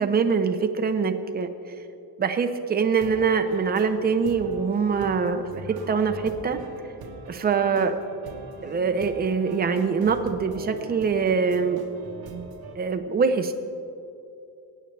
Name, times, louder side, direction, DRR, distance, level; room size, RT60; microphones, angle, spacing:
voice 1, 0.0-1.5 2.2-6.6 7.3-7.9 8.6-11.8 12.8-13.5, right 5 dB, 25° right, 6 dB, 0.7 m, -24 dB
sound 1, 2.9-12.8, right 3 dB, 65° right, 1.3 m, -42 dB
23.0 x 9.1 x 3.3 m, 2.6 s
cardioid pair, 155°, 40 cm